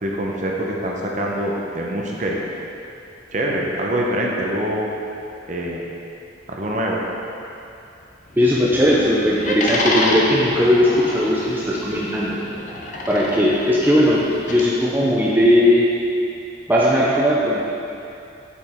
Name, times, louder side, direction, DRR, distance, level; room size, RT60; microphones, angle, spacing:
voice 1, 0.0-2.4 3.3-4.9 5.5-5.8 6.5-7.0, right 1 dB, 40° right, -2 dB, 0.7 m, -24 dB
sound 1, 8.3-14.6, left 1 dB, 40° left, 0.6 m, -28 dB
voice 2, 8.4-12.4 13.1-15.9 16.7-17.6, equal, 10° right, -6 dB, 0.5 m, -18 dB
6.9 x 5.0 x 3.5 m, 2.7 s
head